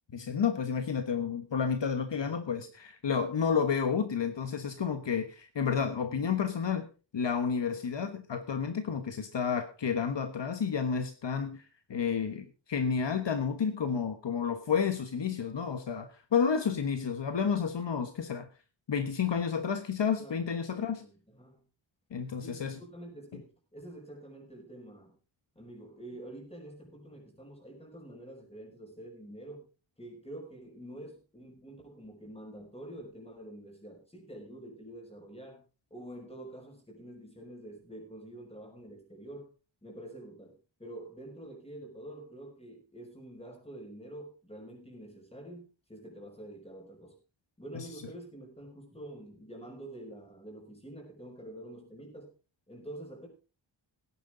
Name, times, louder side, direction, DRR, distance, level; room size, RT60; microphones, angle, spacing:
voice 1, 0.1-6.9 7.1-11.6 11.9-18.5 18.9-21.0 22.1-22.8 23.3-23.4 47.7-47.9, left 6 dB, 65° left, 8 dB, 1.3 m, -31 dB
voice 2, 20.7-21.6 22.4-25.1 25.6-29.6 30.0-35.6 35.9-39.5 39.8-47.2 47.6-52.3 52.7-53.3, right 1 dB, 15° left, 1 dB, 5.8 m, -47 dB
17.0 x 10.5 x 3.9 m, 0.34 s
wide cardioid pair, 130°, 46 cm